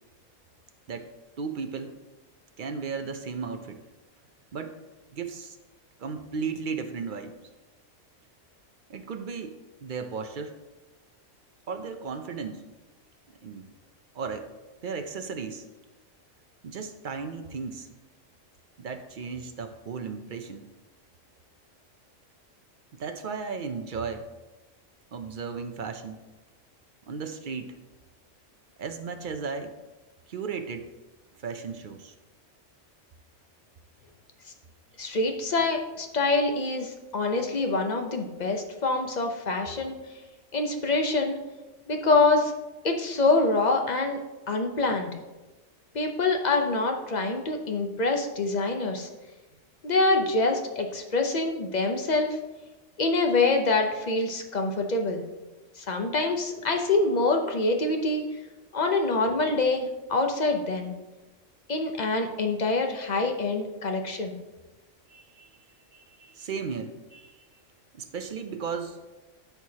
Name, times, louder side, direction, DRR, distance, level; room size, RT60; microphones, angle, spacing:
voice 1, 1.4-2.0 2.6-3.8 4.5-4.8 5.1-5.6 6.0-7.4 8.9-10.6 11.7-12.6 13.4-13.6 14.1-14.5 14.8-15.6 16.6-17.9 18.8-20.6 22.9-24.3 25.1-26.2 27.1-27.8 28.8-29.7 30.3-30.9 31.4-32.1 65.1-65.5 65.9-67.3 67.9-69.0, right 5 dB, 55° right, 7 dB, 0.6 m, -35 dB
voice 2, 35.0-40.0 40.5-41.4 41.9-42.5 42.8-44.2 44.5-45.1 45.9-49.1 49.8-52.4 53.0-55.2 55.8-58.2 58.7-60.9 61.7-64.4, left 3 dB, 40° left, 4 dB, 0.7 m, -25 dB
12.5 x 4.7 x 2.8 m, 1.1 s
omnidirectional pair, 1.3 m